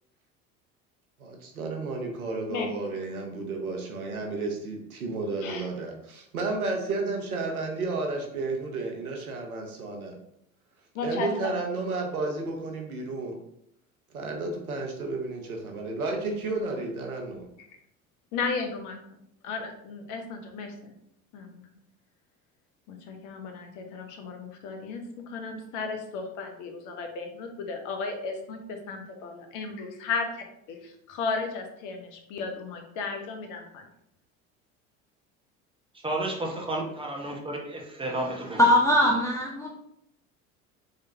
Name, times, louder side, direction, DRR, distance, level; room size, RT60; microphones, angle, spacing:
voice 1, 1.2-10.1 11.0-13.4 14.1-17.5, right 3 dB, 85° right, 2 dB, 0.8 m, -32 dB
voice 2, 10.9-11.5 18.3-19.0 19.4-20.9 21.3-21.7 22.9-30.3 30.7-33.6, left 4 dB, 45° left, 3 dB, 0.8 m, -34 dB
voice 3, 36.0-38.6, right 1 dB, 10° right, -1 dB, 0.9 m, -32 dB
voice 4, 38.6-39.7, left 1 dB, 10° left, -3 dB, 0.4 m, -21 dB
3.8 x 3.3 x 2.7 m, 0.75 s
figure-of-eight pair, 70°, 43 cm